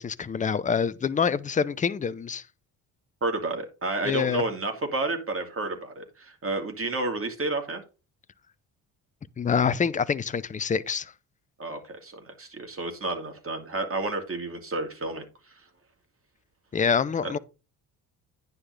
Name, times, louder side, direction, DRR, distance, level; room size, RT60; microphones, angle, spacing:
voice 1, 0.0-2.4 4.0-4.4 9.4-11.1 16.7-17.4, left 6 dB, 15° left, 0.6 m, -26 dB
voice 2, 3.2-7.8 11.6-15.5 17.2-17.3, right 2 dB, 30° right, 2.7 m, -31 dB
9.7 x 4.0 x 6.6 m
figure-of-eight pair, 45°, 46 cm